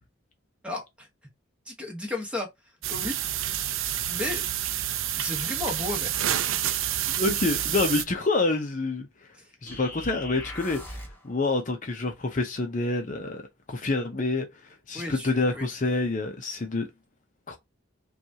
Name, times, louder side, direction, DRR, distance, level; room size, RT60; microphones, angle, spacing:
voice 1, 0.6-1.1 1.7-2.5 2.9-3.5 4.1-4.4 5.2-6.2 14.9-15.7, left 2 dB, 5° right, 1.1 m, -34 dB
sound 1, 2.8-8.0, right 11 dB, 70° right, 0.4 m, -28 dB
voice 2, 7.2-9.1 9.6-13.4 13.7-16.9 17.5-17.6, left 3 dB, 40° left, 0.6 m, -27 dB
sound 2, 9.7-11.3, left 1 dB, 10° left, 1.7 m, -40 dB
5.7 x 2.4 x 2.8 m
head